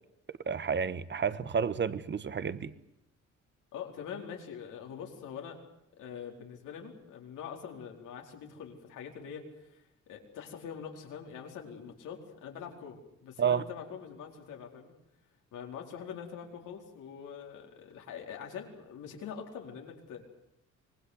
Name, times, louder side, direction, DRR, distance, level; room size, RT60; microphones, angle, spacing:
voice 1, 0.4-2.7 13.4-13.7, right 7 dB, 35° right, 14 dB, 1.3 m, -30 dB
voice 2, 3.7-5.6 6.0-14.9 15.5-20.2, left 7 dB, 85° left, 1 dB, 4.4 m, -44 dB
25.0 x 20.0 x 8.1 m, 0.82 s
cardioid pair, 90°, 30 cm